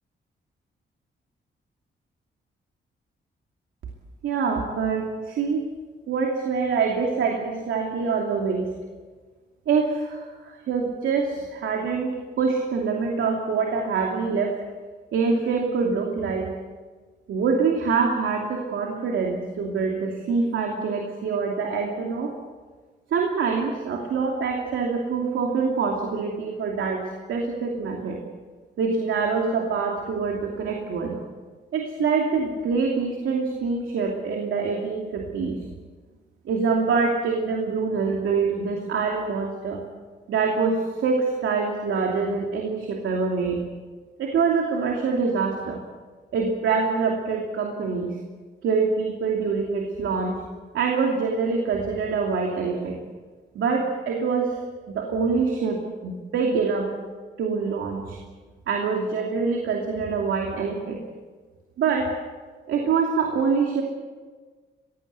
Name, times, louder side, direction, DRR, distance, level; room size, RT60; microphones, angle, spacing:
voice 1, 4.2-5.6 6.1-8.7 9.7-14.6 15.1-16.5 17.3-22.3 23.1-28.2 28.8-31.2 31.7-35.6 36.4-39.8 40.3-43.6 44.2-45.8 46.3-48.2 48.6-50.4 50.7-53.0 53.5-54.5 54.9-56.9 57.4-58.2 58.7-61.0 61.8-62.1 62.7-63.8, right 5 dB, 85° right, 1 dB, 2.8 m, -25 dB
21.5 x 17.0 x 8.2 m, 1.4 s
supercardioid pair, 55°, 20 cm